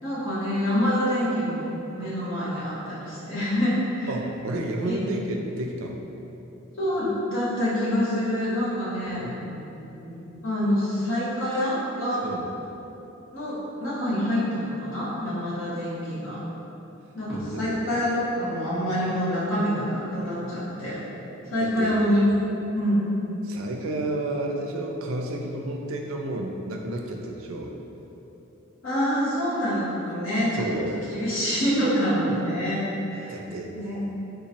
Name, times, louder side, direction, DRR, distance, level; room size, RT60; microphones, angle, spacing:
voice 1, 0.0-4.1 4.8-5.0 6.8-9.2 10.4-12.2 13.3-16.4 17.1-21.0 21.5-22.3 22.7-23.1 28.8-30.6 31.1-32.8 33.1-33.4 33.7-34.1, equal, 75° left, -9 dB, 1.2 m, -26 dB
voice 2, 4.1-6.0 9.1-10.4 12.2-12.5 17.5-17.8 21.6-22.0 23.4-27.7 30.5-31.0 33.3-33.7, right 1 dB, 85° right, 1 dB, 0.4 m, -31 dB
3.6 x 2.9 x 2.8 m, 3.0 s
head